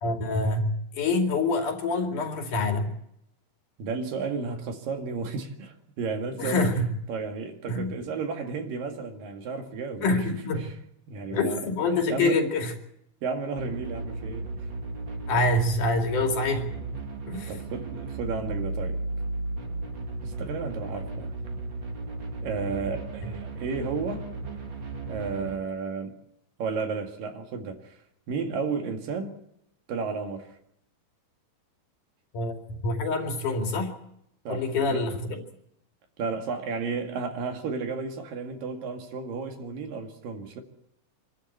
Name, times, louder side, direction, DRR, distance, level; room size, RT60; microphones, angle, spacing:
voice 1, 0.0-3.0 6.4-6.9 7.7-8.0 10.0-10.7 11.3-12.7 15.3-16.7 17.3-17.6 32.3-33.9 34.5-35.4, left 2 dB, 65° left, 3.8 m, -26 dB
voice 2, 3.8-6.7 7.1-10.2 11.1-11.6 11.9-12.4 13.2-14.5 17.5-19.0 20.2-21.3 22.4-24.3 25.1-26.1 26.6-28.0 28.3-29.4 29.9-30.5 34.5-35.1 36.2-40.6, right 4 dB, 75° right, 3.7 m, -33 dB
sound 1, 13.6-25.6, right 2 dB, 35° right, 2.5 m, -35 dB
26.0 x 13.5 x 8.5 m
omnidirectional pair, 4.0 m